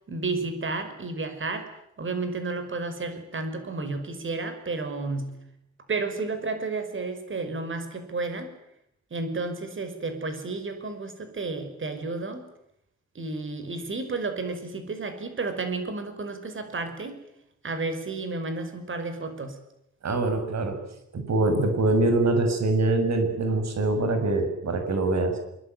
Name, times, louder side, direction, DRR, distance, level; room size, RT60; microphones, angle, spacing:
voice 1, 0.1-1.7 2.0-5.4 5.9-8.5 9.1-12.5 13.1-17.2 17.6-19.6, right 3 dB, 45° right, 8 dB, 5.6 m, -32 dB
voice 2, 20.0-20.8 21.1-25.4, right 2 dB, 65° right, 7 dB, 7.2 m, -24 dB
25.0 x 24.0 x 9.3 m, 0.79 s
wide cardioid pair, 160°, 29 cm